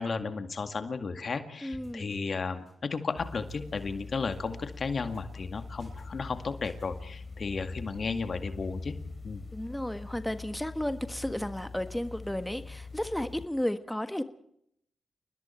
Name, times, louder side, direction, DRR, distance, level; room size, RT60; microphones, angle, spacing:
voice 1, 0.0-9.0 9.2-9.4, left 4 dB, 60° left, 8 dB, 2.0 m, -34 dB
voice 2, 1.6-2.2 9.5-14.2, left 1 dB, 10° left, 9 dB, 1.5 m, -33 dB
brush-loop, 1.7-2.4 2.7-3.1 3.5-4.4 4.7-5.2 5.6-7.0, right 2 dB, 45° right, 6.6 m, -54 dB
sound 1, 3.2-13.5, left 3 dB, 35° left, 4.0 m, -43 dB
29.5 x 20.0 x 4.5 m, 0.70 s
supercardioid pair, 45°, 0 cm